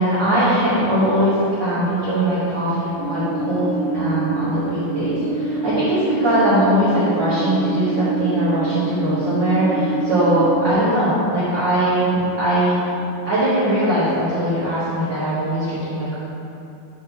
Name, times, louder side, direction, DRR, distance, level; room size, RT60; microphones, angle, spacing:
voice 1, 0.0-1.3 1.6-3.7 3.9-12.8 13.2-16.2, right 1 dB, 65° right, -11 dB, 1.1 m, -20 dB
sound 1, 3.0-10.7, right 4 dB, 85° right, 1.4 m, -25 dB
7.3 x 2.9 x 6.0 m, 2.8 s
omnidirectional pair, 4.1 m